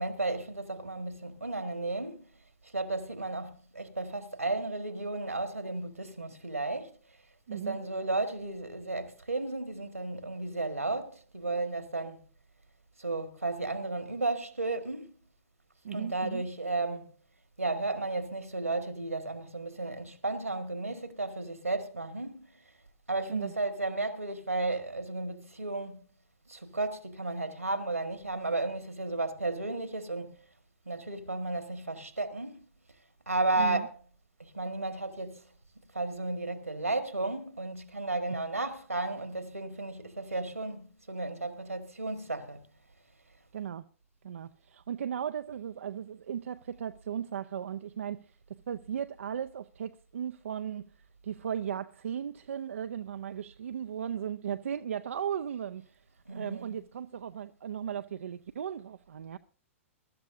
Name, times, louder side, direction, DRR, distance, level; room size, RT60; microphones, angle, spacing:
voice 1, 0.0-2.3 2.7-7.0 7.5-12.2 13.0-15.2 15.9-17.1 17.6-22.5 23.1-26.1 26.5-30.4 30.9-32.7 33.3-34.0 34.4-35.4 35.9-42.7 56.3-56.8, right 2 dB, 90° right, 1.8 m, -33 dB
voice 2, 7.5-7.8 15.8-16.5 23.3-23.5 33.6-33.9 43.5-43.9 44.2-50.9 51.2-56.0 56.3-59.4, right 8 dB, 65° right, 0.5 m, -36 dB
23.0 x 12.5 x 2.7 m
figure-of-eight pair, 105°, 8 cm